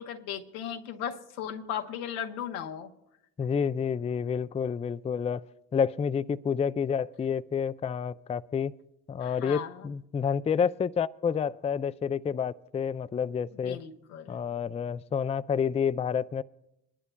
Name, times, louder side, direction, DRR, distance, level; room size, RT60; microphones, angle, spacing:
voice 1, 0.0-2.9 9.2-9.9 13.6-14.4, left 9 dB, 90° left, 4 dB, 0.9 m, -37 dB
voice 2, 3.4-5.4 5.7-8.7 9.1-13.8 14.3-16.4, left 7 dB, 15° left, 13 dB, 0.3 m, -29 dB
27.0 x 11.0 x 2.2 m, 0.87 s
hypercardioid pair, 45°, 43 cm